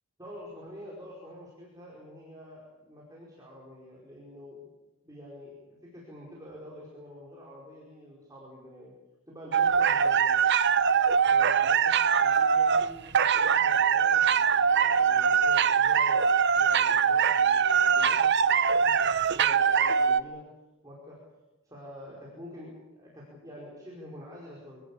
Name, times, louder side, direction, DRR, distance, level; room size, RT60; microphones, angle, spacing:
voice 1, 0.2-4.7 5.0-8.9 9.3-10.4 11.2-20.5 20.8-21.2 21.6-24.8, left 1 dB, 15° right, -4 dB, 4.8 m, -47 dB
sound 1, 9.5-20.2, right 7 dB, 50° right, 0.7 m, -23 dB
24.5 x 17.5 x 8.6 m, 1.1 s
head